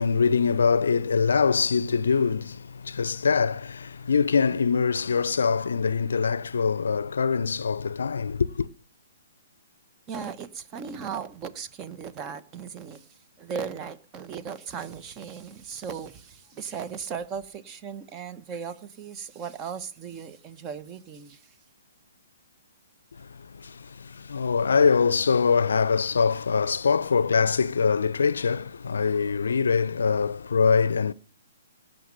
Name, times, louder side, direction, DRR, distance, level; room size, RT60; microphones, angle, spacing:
voice 1, 0.0-8.7 23.2-31.1, left 5 dB, 70° left, 0.6 m, -23 dB
voice 2, 10.1-13.1 13.4-21.5, right 6 dB, 25° right, 1.1 m, -37 dB
17.5 x 6.6 x 9.8 m
figure-of-eight pair, 125°, 0 cm